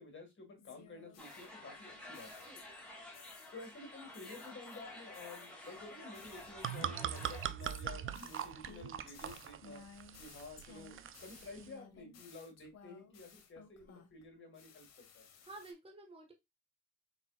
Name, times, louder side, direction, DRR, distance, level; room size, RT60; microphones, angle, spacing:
voice 1, 0.0-2.5 3.5-9.8 10.2-15.3, left 2 dB, 40° left, 3 dB, 1.6 m, -52 dB
sound 1, 0.6-2.9 3.1-3.7 4.1-14.2 14.5-15.7, left 6 dB, 60° left, 1.0 m, -58 dB
sound 2, 1.2-7.5, left 2 dB, 5° left, 1.8 m, -51 dB
sound 3, 6.3-11.7, right 10 dB, 45° right, 0.4 m, -42 dB
voice 2, 15.2-16.3, right 2 dB, 20° right, 2 dB, 1.2 m, -52 dB
4.0 x 3.9 x 2.3 m, 0.21 s
cardioid pair, 90°, 30 cm